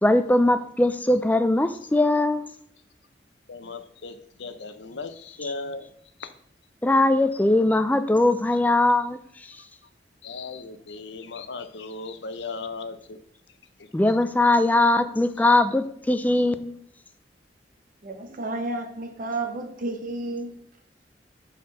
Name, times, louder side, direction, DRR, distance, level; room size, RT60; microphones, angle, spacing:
voice 1, 0.0-2.5 6.8-9.2 13.9-16.7, left 2 dB, 10° left, 0.4 m, -20 dB
voice 2, 3.5-5.9 6.2-6.3 9.4-9.6 10.2-13.2 13.8-14.2 15.4-15.5 16.3-16.5, left 3 dB, 85° left, 0.7 m, -37 dB
voice 3, 18.0-20.5, right 2 dB, 50° right, 0.9 m, -31 dB
7.6 x 4.1 x 4.1 m
head